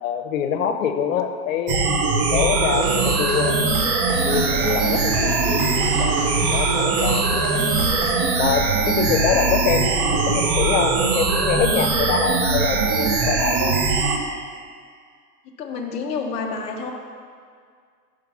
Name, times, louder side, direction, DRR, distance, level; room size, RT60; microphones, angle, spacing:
voice 1, 0.0-2.0 2.3-3.6 4.2-7.5 8.4-13.8, left 8 dB, 55° left, 7 dB, 0.7 m, -25 dB
sound 1, 1.7-14.2, right 4 dB, 30° right, 0.6 m, -21 dB
sound 2, 2.7-8.3, right 1 dB, 70° right, 1.3 m, -34 dB
voice 2, 15.4-16.9, left 5 dB, 15° left, 1 dB, 0.4 m, -29 dB
5.8 x 4.8 x 5.8 m, 2.1 s
hypercardioid pair, 100°, 47 cm